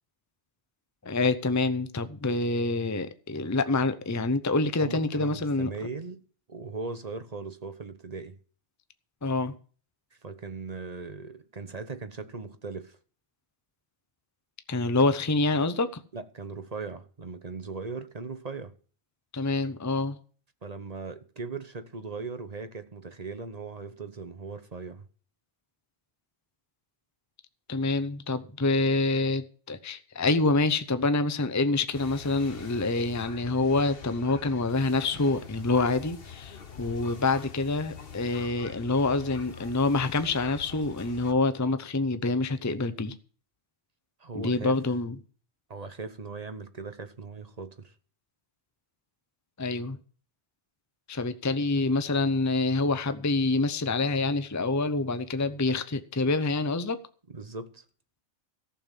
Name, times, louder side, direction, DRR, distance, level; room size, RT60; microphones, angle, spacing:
voice 1, 1.0-5.7 9.2-9.6 14.7-16.0 19.3-20.2 27.7-43.1 44.3-45.2 49.6-50.0 51.1-57.0, left 3 dB, 20° left, 0.7 m, -26 dB
voice 2, 4.8-6.2 6.5-8.4 10.2-13.0 16.1-18.7 20.6-25.0 44.2-44.8 45.7-47.9 57.3-57.8, right 4 dB, 35° right, 1.0 m, -39 dB
sound 1, 31.9-41.3, left 6 dB, 55° left, 1.4 m, -45 dB
14.5 x 7.1 x 7.4 m
omnidirectional pair, 1.2 m